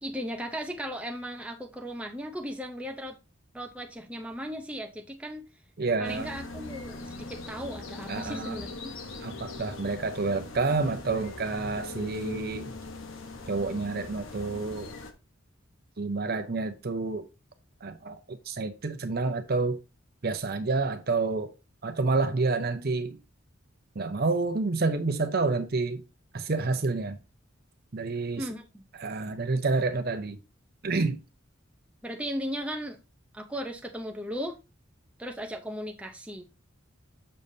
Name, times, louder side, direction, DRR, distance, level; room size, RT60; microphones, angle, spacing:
voice 1, 0.0-3.2 3.5-5.4 6.0-9.0 28.4-28.8 32.0-33.0 33.3-34.6 35.2-36.4, equal, 5° right, 0.7 m, -36 dB
voice 2, 5.8-6.3 8.1-8.6 9.2-12.7 13.5-14.9 16.0-17.3 17.8-19.8 20.2-21.5 21.8-23.2 24.0-26.0 26.3-27.2 27.9-28.5 29.0-30.4 30.8-31.2, right 3 dB, 50° right, 0.7 m, -29 dB
sound 1, 6.0-15.1, left 3 dB, 75° left, 1.0 m, -41 dB
7.0 x 6.5 x 2.7 m
head